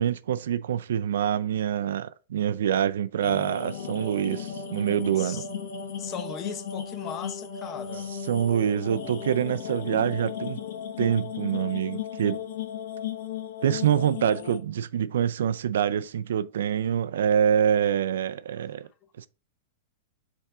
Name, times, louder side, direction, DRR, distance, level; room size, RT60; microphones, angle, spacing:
voice 1, 0.0-5.4 8.3-10.6 11.0-12.4 13.6-18.9 19.2-19.3, right 9 dB, 80° right, 0.4 m, -25 dB
sound 1, 3.2-14.6, left 7 dB, 65° left, 1.2 m, -35 dB
voice 2, 6.0-8.1, left 8 dB, 25° left, 0.6 m, -37 dB
5.5 x 3.5 x 4.8 m
supercardioid pair, 160°, 0 cm